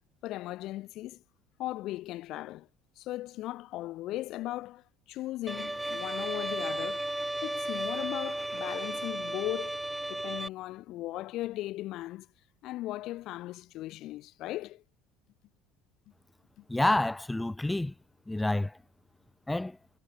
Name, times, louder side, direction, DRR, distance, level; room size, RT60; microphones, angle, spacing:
voice 1, 0.2-1.2 1.6-2.7 2.9-7.1 7.4-12.3 12.6-14.8, left 16 dB, 55° left, 1.7 m, -37 dB
Bowed string instrument, 5.5-10.5, right 1 dB, 5° right, 1.1 m, -34 dB
voice 2, 16.7-17.9 18.3-18.8 19.5-19.8, left 2 dB, 10° left, 2.7 m, -28 dB
figure-of-eight pair, 60°, 0 cm